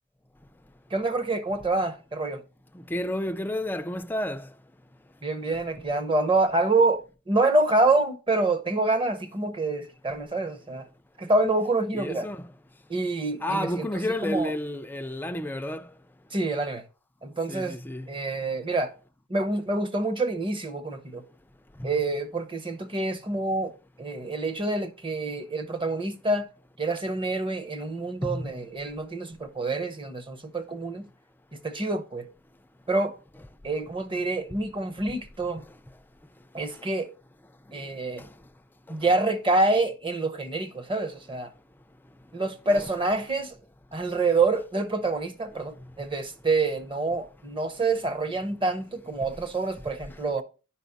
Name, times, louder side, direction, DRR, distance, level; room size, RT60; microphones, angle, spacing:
voice 1, 0.9-2.4 5.2-10.9 11.2-12.3 12.9-14.5 16.3-16.8 17.2-17.8 18.1-18.9 19.3-21.2 21.8-23.7 24.0-26.5 26.8-31.1 31.5-32.3 32.9-33.1 33.6-35.6 36.5-37.1 37.7-38.2 38.9-41.5 42.3-43.6 43.9-50.4, right 2 dB, 25° right, 0.9 m, -27 dB
voice 2, 2.9-4.4 11.9-12.4 13.4-15.8 17.5-18.0 28.2-28.4, left 1 dB, 10° left, 0.4 m, -30 dB
10.0 x 5.1 x 4.0 m
head